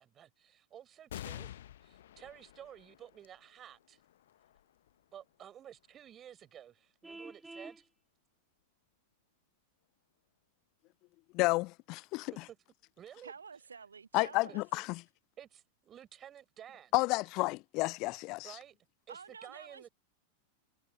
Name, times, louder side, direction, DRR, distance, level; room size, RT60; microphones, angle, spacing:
voice 1, 0.0-4.0 5.1-7.9 12.2-12.6 13.0-13.3 14.5-14.6 15.4-16.9 18.4-18.8 19.1-19.9, right 10 dB, 25° right, 4.3 m, -53 dB
sound 1, 1.1-8.0 8.6-8.7 9.8-10.4, left 12 dB, 60° left, 1.1 m, -51 dB
Vehicle horn car horn honking, 7.0-7.8, right 2 dB, 5° right, 3.0 m, -47 dB
voice 2, 11.3-12.3 14.1-14.9 16.9-18.6, left 23 dB, 40° left, 0.3 m, -31 dB
voice 3, 13.2-14.6 19.1-19.9, right 5 dB, 75° right, 1.8 m, -50 dB
figure-of-eight pair, 90°, 0 cm